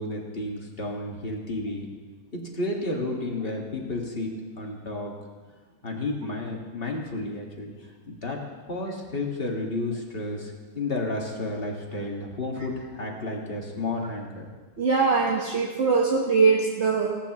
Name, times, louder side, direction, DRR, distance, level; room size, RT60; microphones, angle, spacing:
voice 1, 0.0-1.9 2.3-5.1 5.8-7.7 8.1-8.4 8.7-14.5, left 2 dB, 25° left, -1 dB, 1.8 m, -32 dB
voice 2, 14.8-17.1, right 4 dB, 40° right, -2 dB, 1.1 m, -22 dB
17.5 x 14.0 x 3.1 m, 1.4 s
omnidirectional pair, 2.4 m